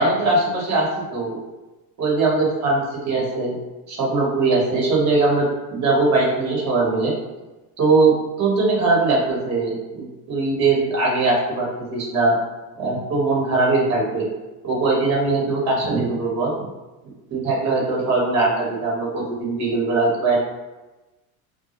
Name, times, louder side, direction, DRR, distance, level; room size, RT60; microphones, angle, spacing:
voice 1, 0.0-1.4 2.0-3.6 3.9-7.1 7.8-12.3 12.8-14.3 14.6-16.5 17.3-20.4, right 3 dB, 40° right, -4 dB, 1.0 m, -21 dB
2.2 x 2.0 x 2.9 m, 1.1 s
supercardioid pair, 120°, 44 cm